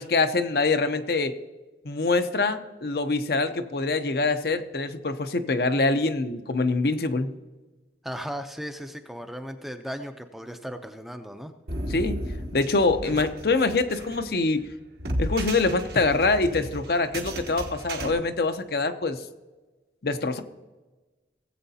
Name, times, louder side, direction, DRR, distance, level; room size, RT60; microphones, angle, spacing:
voice 1, 0.0-1.3 1.8-7.3 11.9-12.2 12.5-14.7 15.2-19.2 20.0-20.4, left 3 dB, 55° left, 9 dB, 0.6 m, -24 dB
voice 2, 8.0-11.5, equal, ahead, 6 dB, 0.5 m, -36 dB
sound 1, 11.7-18.1, right 1 dB, 65° right, 1.2 m, -34 dB
17.5 x 8.0 x 2.8 m, 1.2 s
head